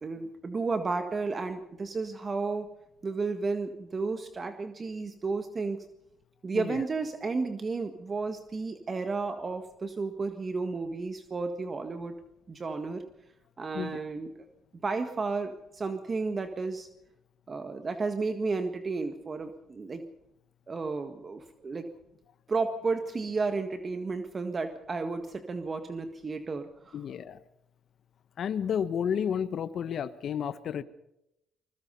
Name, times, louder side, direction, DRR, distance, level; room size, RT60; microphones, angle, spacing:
voice 1, 0.0-2.7 3.0-5.8 6.4-12.2 12.5-13.0 13.6-14.3 14.7-16.9 17.5-20.0 20.7-21.9 22.5-27.0, right 4 dB, 35° right, 8 dB, 1.7 m, -32 dB
voice 2, 26.9-27.4 28.4-30.8, left 8 dB, 60° left, 14 dB, 1.1 m, -31 dB
24.0 x 21.0 x 5.5 m, 0.84 s
cardioid pair, 80°, 0 cm